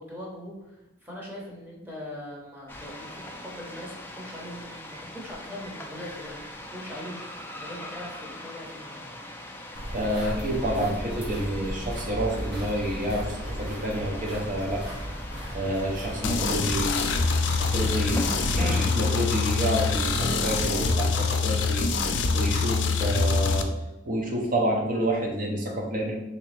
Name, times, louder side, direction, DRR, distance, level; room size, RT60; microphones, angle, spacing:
voice 1, 0.0-9.1, left 1 dB, 10° right, -3 dB, 0.8 m, -41 dB
sound 1, 2.7-20.0, left 1 dB, 10° left, 0.3 m, -42 dB
sound 2, 9.7-18.5, equal, 70° right, 1.1 m, -36 dB
voice 2, 9.9-14.8 15.5-17.1 17.6-23.7 24.1-26.2, right 1 dB, 45° right, 0 dB, 0.7 m, -28 dB
sound 3, 16.2-23.6, left 4 dB, 85° left, 0.4 m, -25 dB
3.4 x 2.9 x 3.2 m, 1.0 s
head